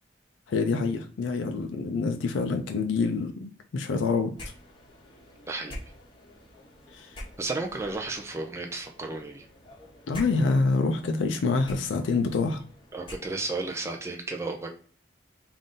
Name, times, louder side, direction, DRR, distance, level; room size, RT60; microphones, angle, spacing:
voice 1, 0.5-4.3 6.9-7.1 10.1-12.6, left 4 dB, 80° left, 4 dB, 0.4 m, -26 dB
sound 1, 4.3-13.7, left 1 dB, 25° left, 0.9 m, -47 dB
voice 2, 7.4-9.5 12.9-14.7, right 3 dB, 15° right, 2 dB, 0.4 m, -33 dB
3.8 x 2.5 x 3.7 m, 0.43 s
head